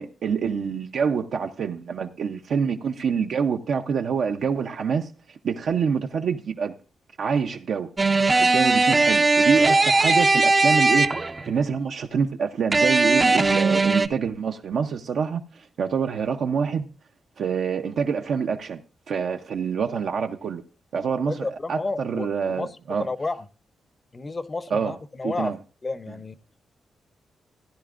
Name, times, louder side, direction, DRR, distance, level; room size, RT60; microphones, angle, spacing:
voice 1, 0.0-6.7 7.2-7.9 8.4-16.9 17.4-18.8 19.1-20.6 20.9-23.1 24.7-25.0 25.2-25.6 26.1-26.2, right 6 dB, 70° right, 0.7 m, -26 dB
sound 1, 8.0-11.5 12.7-14.1, right 3 dB, 25° right, 0.5 m, -19 dB
voice 2, 21.1-22.7 23.0-23.5 24.1-25.5 25.8-26.4, left 3 dB, 30° left, 0.7 m, -31 dB
15.5 x 10.0 x 2.5 m
cardioid pair, 95°, 0 cm